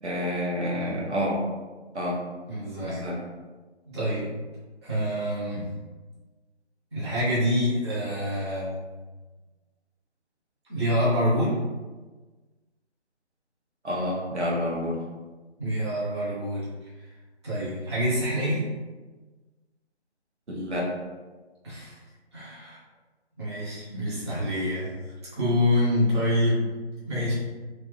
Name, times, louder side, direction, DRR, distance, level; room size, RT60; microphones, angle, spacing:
voice 1, 0.0-1.4 1.9-2.2 2.8-3.2 13.8-15.0 20.5-20.9, equal, 80° right, -3 dB, 1.1 m, -28 dB
voice 2, 2.4-3.0 3.9-4.3 4.8-5.7 6.9-8.7 10.7-11.6 15.6-16.7 17.4-18.6 21.6-22.0 22.3-22.8 23.4-24.9 25.3-26.6 27.0-27.3, equal, 25° right, -9 dB, 0.9 m, -26 dB
2.9 x 2.6 x 3.3 m, 1.3 s
figure-of-eight pair, 155°, 34 cm